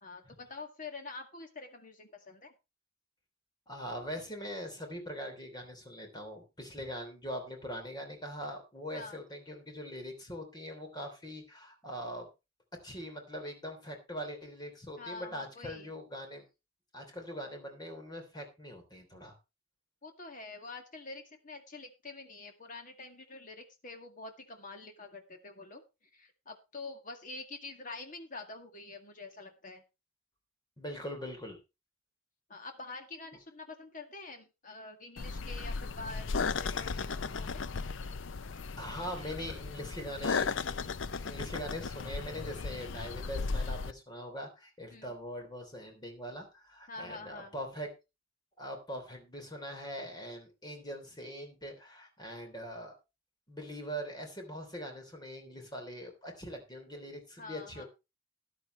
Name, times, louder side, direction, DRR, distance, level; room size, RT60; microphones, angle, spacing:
voice 1, 0.0-2.5 8.9-9.2 15.0-15.9 20.0-25.8 26.1-29.8 32.5-37.6 44.9-45.1 46.9-47.5 57.4-57.8, left 3 dB, 40° left, 5 dB, 2.0 m, -46 dB
voice 2, 3.7-12.3 12.8-16.4 16.9-19.3 30.8-31.6 38.8-40.9 41.2-47.9 48.6-52.9 53.5-57.8, equal, 20° left, 4 dB, 3.2 m, -42 dB
sound 1, 35.2-43.9, left 4 dB, 65° left, 0.6 m, -36 dB
13.5 x 11.0 x 3.1 m, 0.26 s
head